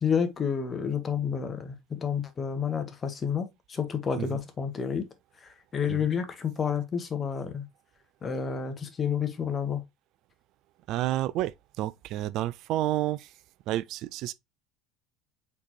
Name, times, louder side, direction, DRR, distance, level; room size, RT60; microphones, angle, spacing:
voice 1, 0.0-5.0 5.4-7.7 8.2-9.8, left 7 dB, 35° left, 1.2 m, -30 dB
voice 2, 10.9-13.3 13.7-14.3, right 14 dB, 60° right, 0.3 m, -30 dB
4.3 x 4.1 x 2.9 m
hypercardioid pair, 70°, 0 cm